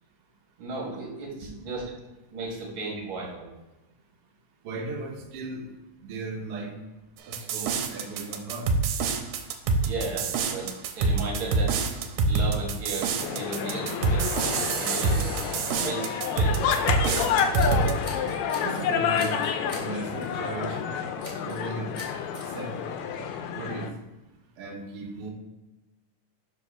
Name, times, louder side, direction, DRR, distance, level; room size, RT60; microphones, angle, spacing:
voice 1, 0.6-1.8 2.3-3.4 9.8-11.8 12.3-14.5 14.8-15.2 15.8-16.7, right 3 dB, 45° right, -2 dB, 2.2 m, -35 dB
voice 2, 4.6-5.6 6.0-6.7 7.3-8.7 18.6-19.4 19.7-20.8 21.4-21.9 22.4-22.7 23.5-23.9 24.6-25.3, right 3 dB, 65° right, 0 dB, 1.5 m, -36 dB
sound 1, 7.3-17.9, right 4 dB, 85° right, 2.1 m, -26 dB
sound 2, 13.2-23.9, left 7 dB, 80° left, 1.8 m, -29 dB
Scissors, 17.3-18.8 19.1-19.9 20.2-20.4 21.2-21.6 21.9-22.4, left 1 dB, 30° left, 0.6 m, -43 dB
4.8 x 4.4 x 5.6 m, 1.1 s
omnidirectional pair, 3.7 m